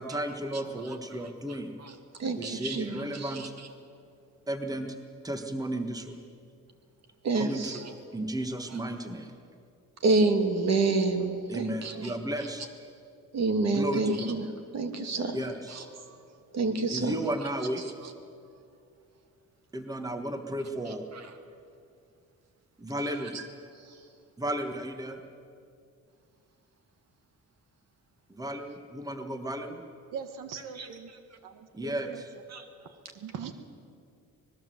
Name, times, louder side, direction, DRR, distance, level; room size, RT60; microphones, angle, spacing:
voice 1, 0.0-1.8 2.4-3.5 4.5-4.9 5.2-6.2 7.4-7.8 8.1-9.3 11.5-12.9 13.7-14.4 15.3-15.8 16.9-17.8 19.7-21.1 22.8-23.4 24.4-25.2 28.3-29.8 31.7-32.3, right 1 dB, 10° right, 6 dB, 1.5 m, -34 dB
voice 2, 2.2-3.5 7.2-7.8 10.0-12.1 13.3-14.5 14.7-15.4 15.7-15.8 16.5-17.1 23.3-23.5 23.9-24.0 30.8-30.9 32.5-32.6, right 3 dB, 55° right, 6 dB, 2.5 m, -28 dB
voice 3, 30.1-31.1 31.4-32.2 33.1-33.5, right 7 dB, 90° right, 8 dB, 1.6 m, -40 dB
25.0 x 20.0 x 7.8 m, 2.4 s
cardioid pair, 145°, 31 cm